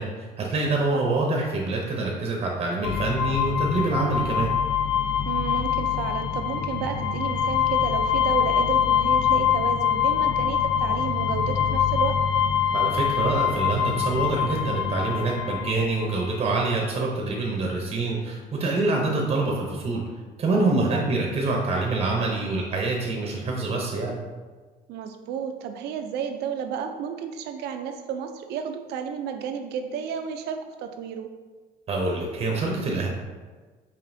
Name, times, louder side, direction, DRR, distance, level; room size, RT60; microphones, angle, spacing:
voice 1, 0.0-4.5 12.7-20.0 20.4-24.1 31.9-33.1, right 2 dB, 35° right, -1 dB, 0.6 m, -26 dB
sound 1, 2.8-16.3, left 8 dB, 75° left, 0.5 m, -24 dB
voice 2, 5.2-12.2 20.9-21.1 24.9-31.3, right 7 dB, 80° right, 6 dB, 0.4 m, -32 dB
5.0 x 2.6 x 2.6 m, 1.3 s
cardioid pair, 110°, 17 cm